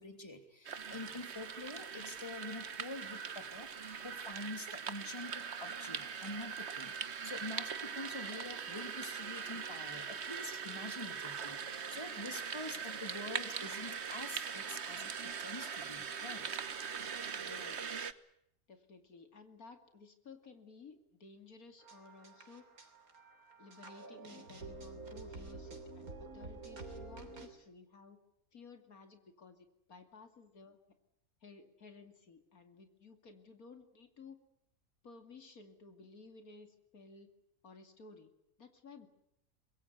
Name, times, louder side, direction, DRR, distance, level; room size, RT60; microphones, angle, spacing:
voice 1, 0.0-3.7 4.0-7.0 7.2-16.4, left 2 dB, 20° left, 7 dB, 3.2 m, -46 dB
sound 1, 0.6-18.1, right 6 dB, 50° right, 1.4 m, -41 dB
voice 2, 17.3-18.0 18.7-22.7 23.6-28.2 28.5-30.8 31.4-34.4 35.0-37.3 37.6-38.3 38.6-39.1, left 4 dB, 80° left, 7 dB, 2.9 m, -56 dB
sound 2, 21.8-27.5, right 3 dB, 80° right, 3.7 m, -49 dB
25.0 x 22.0 x 8.2 m, 0.78 s
omnidirectional pair, 1.5 m